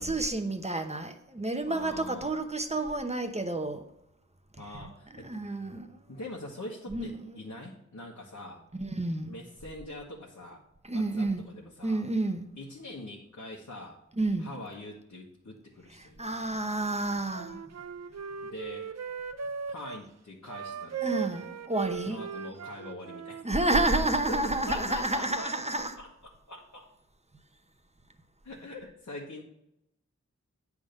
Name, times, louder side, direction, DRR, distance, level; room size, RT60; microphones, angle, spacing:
voice 1, 0.0-3.8 5.2-6.0 6.9-7.1 8.8-9.4 10.9-11.4 11.8-12.4 14.2-14.5 16.2-17.6 21.0-22.2 23.4-25.9, right 2 dB, 20° right, 7 dB, 0.9 m, -30 dB
voice 2, 1.7-2.4 4.6-5.6 6.1-8.6 9.3-10.6 10.9-12.0 12.6-14.0 14.4-16.4 18.4-18.9 19.7-21.3 22.0-23.4 24.0-25.5 26.0-26.8 28.4-29.4, left 1 dB, 65° left, -3 dB, 1.3 m, -43 dB
Wind instrument woodwind instrument, 17.0-20.0 20.5-23.8, right 7 dB, 60° right, 0.5 m, -38 dB
8.7 x 3.7 x 6.5 m, 0.84 s
cardioid pair, 40°, 30 cm